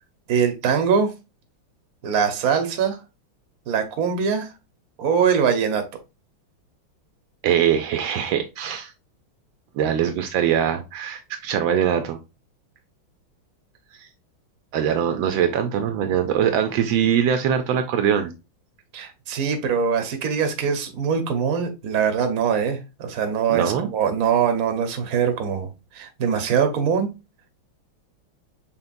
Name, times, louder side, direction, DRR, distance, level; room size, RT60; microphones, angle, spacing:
voice 1, 0.3-1.1 2.0-3.0 3.7-4.5 5.0-5.9 18.9-27.1, right 7 dB, 55° right, 1.1 m, -22 dB
voice 2, 7.4-8.9 9.7-12.2 14.0-14.1 14.7-18.3 23.5-23.9, right 9 dB, 75° right, 1.3 m, -22 dB
5.7 x 3.7 x 2.5 m
omnidirectional pair, 2.2 m